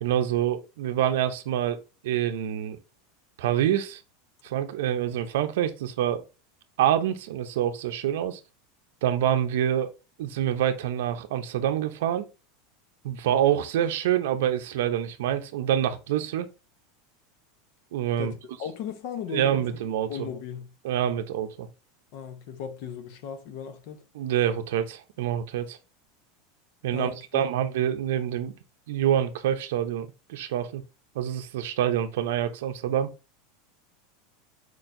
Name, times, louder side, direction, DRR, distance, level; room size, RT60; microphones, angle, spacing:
voice 1, 0.0-2.8 3.4-4.0 4.4-6.2 6.8-8.4 9.0-9.9 10.2-12.3 13.0-16.5 17.9-18.3 19.3-20.3 20.8-21.7 24.1-25.8 26.8-28.5 28.9-30.8 31.1-33.1, right 10 dB, 70° right, 0.6 m, -26 dB
voice 2, 18.2-19.7 20.1-20.7 22.1-24.0 26.9-27.4, left 8 dB, 45° left, 0.7 m, -37 dB
4.6 x 4.5 x 2.5 m
supercardioid pair, 180°, 0 cm